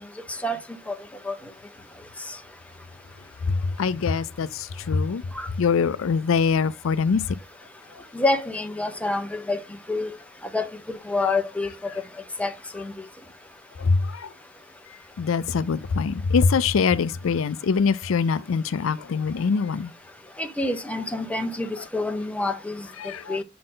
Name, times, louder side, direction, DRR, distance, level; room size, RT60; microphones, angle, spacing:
voice 1, 3.5-5.2 5.6-7.4 13.8-14.3 15.2-19.9 23.0-23.4, left 5 dB, 75° left, 0.4 m, -23 dB
voice 2, 8.1-9.6 9.9-10.1 10.5-10.7 11.1-11.9 12.4-12.9 20.4-22.8 23.3-23.4, left 2 dB, 5° left, 0.9 m, -27 dB
7.6 x 4.1 x 3.8 m
head